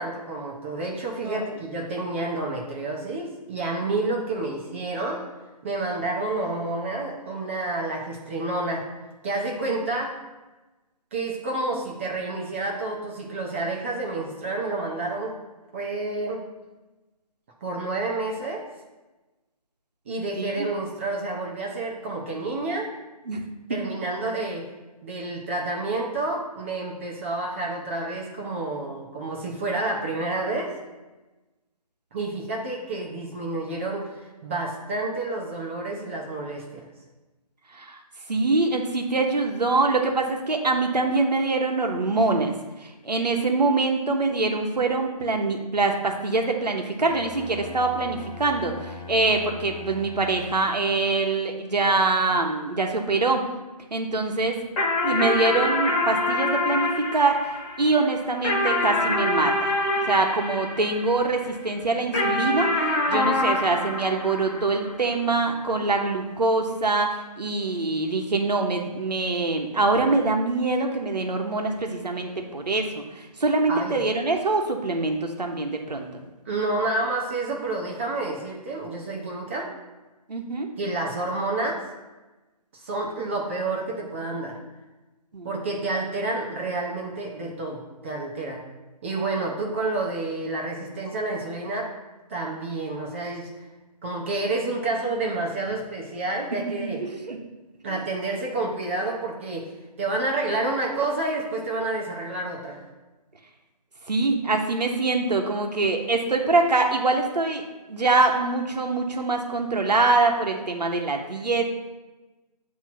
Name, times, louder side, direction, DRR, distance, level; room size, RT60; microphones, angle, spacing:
voice 1, 0.0-5.2 5.6-8.9 9.2-10.1 11.1-15.3 15.7-16.4 17.6-18.6 20.1-22.9 23.7-24.7 25.0-30.7 32.1-36.9 73.7-74.0 76.5-79.7 80.8-81.8 82.7-84.6 85.4-88.6 89.0-91.9 92.3-93.5 94.0-97.0 97.8-99.7 100.0-102.8, right 2 dB, 20° right, -2 dB, 0.6 m, -29 dB
voice 2, 20.4-20.7 23.3-23.4 23.7-23.9 37.7-38.0 38.3-42.5 42.8-53.5 53.9-54.6 55.0-57.5 57.8-59.8 60.1-76.2 80.3-80.7 85.3-85.5 96.5-97.4 97.9-98.0 104.1-107.6 107.9-111.7, right 3 dB, 90° right, 3 dB, 1.1 m, -24 dB
Bowed string instrument, 47.0-51.0, left 3 dB, 55° left, 1.2 m, -41 dB
sound 1, 54.8-61.5 62.1-64.9, left 2 dB, 20° left, 1.2 m, -25 dB
8.1 x 3.0 x 5.8 m, 1.1 s
figure-of-eight pair, 155°, 20 cm